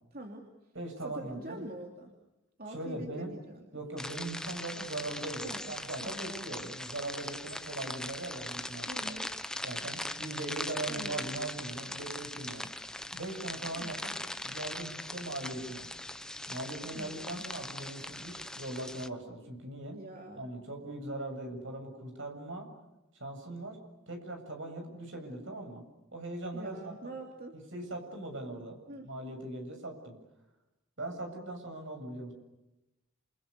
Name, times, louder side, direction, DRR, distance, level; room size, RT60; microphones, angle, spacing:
voice 1, 0.1-0.5 1.0-2.1 2.6-3.6 5.4-5.7 6.0-6.8 8.9-9.3 10.9-11.2 13.8-14.0 16.9-17.4 19.9-20.5 26.5-27.6 28.9-29.1, right 1 dB, 45° right, 1 dB, 3.0 m, -44 dB
voice 2, 0.7-1.7 2.7-3.4 3.7-9.1 9.6-12.7 13.1-15.9 16.5-20.0 20.3-22.7 23.2-23.8 24.1-25.8 26.1-27.2 27.5-28.8 29.0-30.2 31.0-32.3, right 2 dB, 65° right, 5 dB, 7.6 m, -40 dB
sound 1, 4.0-19.1, left 1 dB, 5° left, 1.0 m, -40 dB
29.0 x 28.0 x 6.9 m, 0.97 s
head